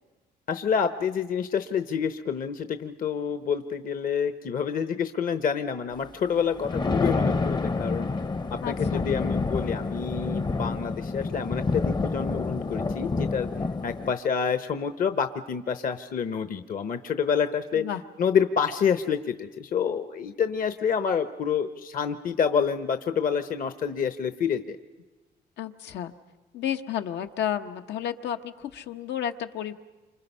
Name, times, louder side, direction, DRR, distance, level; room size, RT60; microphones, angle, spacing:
voice 1, 0.5-8.1 8.6-13.5 13.8-17.8 18.2-24.8, left 7 dB, 55° left, 10 dB, 0.9 m, -28 dB
Thunder, 6.4-14.1, left 3 dB, 25° left, 0.7 m, -28 dB
voice 2, 8.6-9.1 17.7-18.0 25.6-26.1 26.5-29.7, left 10 dB, 85° left, 7 dB, 1.1 m, -32 dB
28.0 x 26.0 x 5.5 m, 1.2 s
cardioid pair, 100°, 18 cm